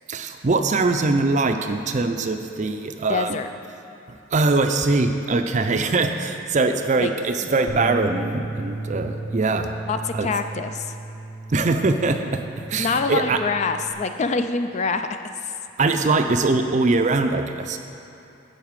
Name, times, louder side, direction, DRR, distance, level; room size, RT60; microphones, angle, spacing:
voice 1, 0.1-3.4 4.1-9.7 10.1-10.3 11.5-12.4 12.7-13.4 15.8-17.8, right 3 dB, 40° right, 6 dB, 0.5 m, -22 dB
voice 2, 3.1-3.5 7.0-7.1 7.4-7.6 9.9-10.9 12.8-15.1 15.4-15.5, left 4 dB, 35° left, 8 dB, 0.3 m, -25 dB
Bass guitar, 7.7-13.9, right 2 dB, 80° right, 0.8 m, -34 dB
11.0 x 4.1 x 7.3 m, 2.9 s
head